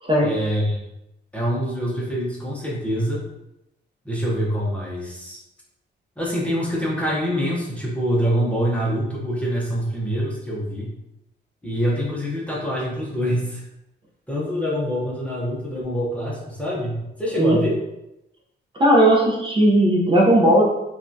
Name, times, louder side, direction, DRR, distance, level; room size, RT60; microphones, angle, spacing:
voice 1, 0.2-0.8 1.3-3.2 4.0-5.4 6.2-10.9 11.6-13.6 14.3-17.8, equal, 5° left, -5 dB, 0.8 m, -25 dB
voice 2, 18.8-20.6, right 1 dB, 25° right, -3 dB, 0.8 m, -16 dB
5.3 x 2.4 x 2.7 m, 0.88 s
cardioid pair, 155°, 19 cm